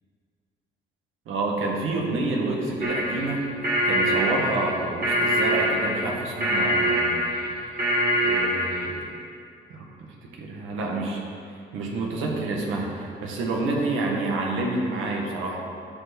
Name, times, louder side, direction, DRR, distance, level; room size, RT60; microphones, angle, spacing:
voice 1, 1.3-3.4 3.8-7.2 7.7-7.9 8.2-9.0 9.7-9.8 10.4-11.2 11.7-15.6, right 2 dB, 85° right, -1 dB, 1.6 m, -28 dB
sound 1, 2.8-8.9, equal, 50° right, 2.4 m, -24 dB
12.5 x 5.0 x 5.2 m, 2.4 s
cardioid pair, 90°, 20 cm